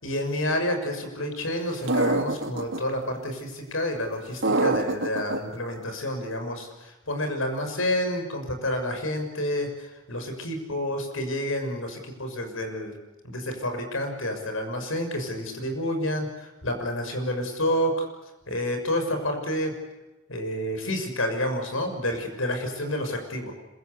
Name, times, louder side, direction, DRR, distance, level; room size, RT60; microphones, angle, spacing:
voice 1, 0.0-12.9 13.2-18.1 18.5-19.8 20.3-23.5, left 1 dB, 90° left, 5 dB, 6.4 m, -29 dB
sound 1, 1.9-2.8 4.4-5.4, right 2 dB, 70° right, 1.9 m, -24 dB
26.5 x 23.0 x 8.3 m, 1.0 s
head